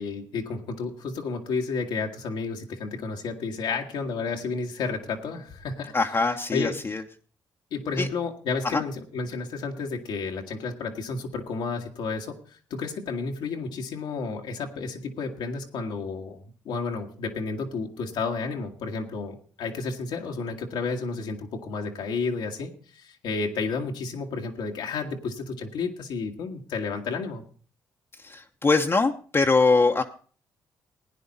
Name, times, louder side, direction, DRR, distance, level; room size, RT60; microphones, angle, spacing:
voice 1, 0.0-5.9 6.5-6.7 7.7-12.4 12.7-16.4 16.6-27.4, left 4 dB, 80° left, 2 dB, 1.6 m, -31 dB
voice 2, 5.9-7.0 8.0-8.1 8.6-8.8 28.2-30.0, left 3 dB, 30° left, 2 dB, 1.0 m, -22 dB
16.0 x 9.5 x 4.1 m, 0.42 s
supercardioid pair, 60°, 8 cm